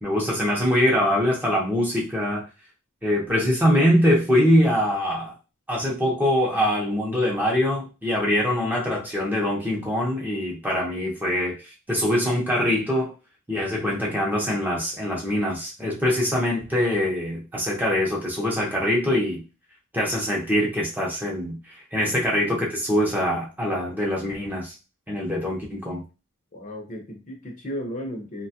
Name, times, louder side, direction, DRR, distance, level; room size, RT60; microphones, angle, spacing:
voice 1, 0.0-2.4 3.0-5.4 5.7-11.6 11.9-13.1 13.5-19.4 19.9-21.6 21.9-24.7 25.1-26.0, equal, 10° right, -3 dB, 0.6 m, -23 dB
voice 2, 26.5-28.5, equal, 35° left, 1 dB, 0.6 m, -34 dB
2.9 x 2.2 x 2.8 m, 0.31 s
head